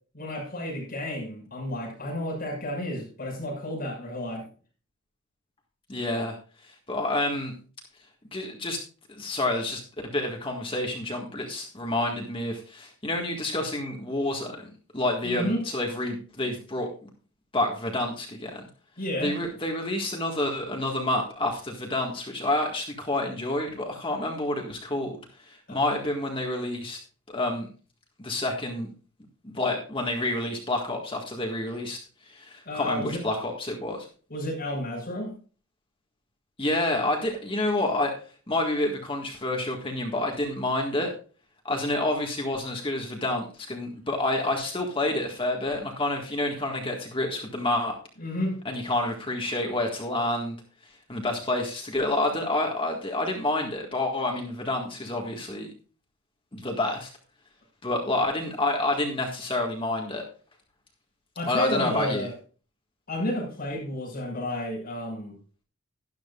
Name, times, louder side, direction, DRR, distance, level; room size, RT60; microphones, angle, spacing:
voice 1, 0.1-4.4 15.2-15.6 19.0-19.4 25.7-25.8 32.6-33.2 34.3-35.4 48.2-48.6 61.3-62.3 63.1-65.3, left 1 dB, 40° left, -2 dB, 6.2 m, -31 dB
voice 2, 5.9-6.4 6.6-7.5 8.3-8.8 9.1-9.8 10.1-14.6 14.9-16.9 17.5-18.7 19.2-25.2 25.5-27.0 27.3-27.7 28.2-28.9 29.4-34.1 36.6-38.1 38.5-41.1 41.7-48.0 48.7-50.6 51.1-55.7 56.5-57.1 57.8-60.2 61.5-62.3, left 2 dB, 25° left, 1 dB, 1.7 m, -28 dB
12.5 x 12.0 x 2.4 m, 0.37 s
head